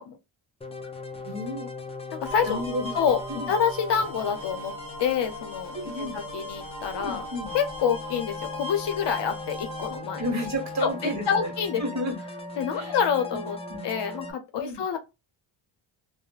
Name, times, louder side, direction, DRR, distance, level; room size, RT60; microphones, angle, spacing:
sound 1, 0.6-14.3, left 1 dB, 15° left, 0.4 m, -38 dB
voice 1, 1.2-1.7 2.4-3.0 3.3-3.5 5.7-6.2 6.9-7.5 10.2-11.5 11.8-12.2 12.7-12.9 13.3-13.4 13.7-13.8 14.6-14.8, equal, 35° right, 1.4 m, -32 dB
voice 2, 2.1-2.6 2.9-3.2 3.5-4.7 5.0-7.3 7.5-10.2 10.8-11.8 12.6-13.6 13.8-15.0, left 7 dB, 60° left, 0.7 m, -27 dB
sound 2, 2.3-10.0, left 1 dB, 10° right, 1.2 m, -40 dB
3.0 x 2.1 x 2.4 m
cardioid pair, 85°, 48 cm